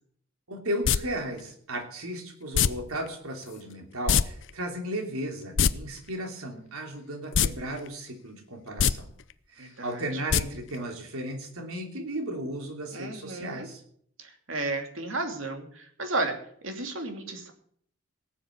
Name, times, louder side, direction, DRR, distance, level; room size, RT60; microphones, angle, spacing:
voice 1, 0.5-9.1 9.5-13.8, right 1 dB, 90° right, 3 dB, 3.2 m, -35 dB
sound 1, 0.8-1.0 2.5-2.7 4.1-4.2 4.5-4.6 5.4-5.7 7.3-7.5 7.9-8.0 8.7-8.9 10.3-10.4 10.7-10.8, left 7 dB, 60° left, 0.5 m, -21 dB
voice 2, 9.6-10.0 12.9-13.7 14.2-16.4 16.6-17.5, right 2 dB, 65° right, 4 dB, 2.7 m, -33 dB
18.0 x 7.3 x 8.2 m, 0.63 s
head